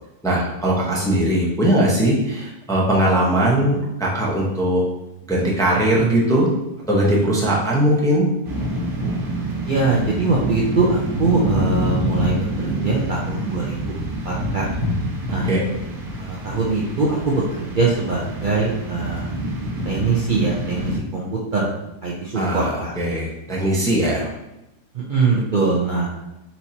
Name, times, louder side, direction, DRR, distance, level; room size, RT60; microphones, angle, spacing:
voice 1, 0.2-4.8 5.3-6.5 6.9-8.3 15.4-15.6 22.3-24.3, right 1 dB, 5° left, -5 dB, 0.5 m, -19 dB
sound 1, 8.4-21.0, right 1 dB, 40° right, 1.3 m, -26 dB
voice 2, 9.7-13.8 14.2-14.7 15.3-15.5 16.1-19.3 19.9-21.3 21.5-21.7 22.0-22.9 24.9-26.1, right 3 dB, 80° right, -4 dB, 0.4 m, -22 dB
4.5 x 4.3 x 2.8 m, 0.92 s
omnidirectional pair, 1.8 m